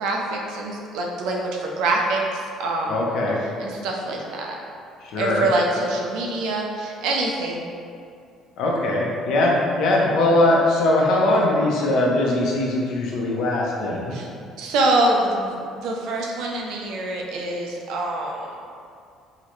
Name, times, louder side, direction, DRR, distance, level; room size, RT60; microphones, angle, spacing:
voice 1, 0.0-3.1 3.6-4.6 5.2-7.6 14.1-14.3 14.6-18.5, right 2 dB, 80° right, 0 dB, 0.4 m, -25 dB
voice 2, 2.9-3.4 5.1-5.5 8.6-14.1, left 1 dB, 70° left, -2 dB, 0.6 m, -21 dB
3.8 x 2.1 x 3.0 m, 2.3 s
cardioid pair, 145°, 0 cm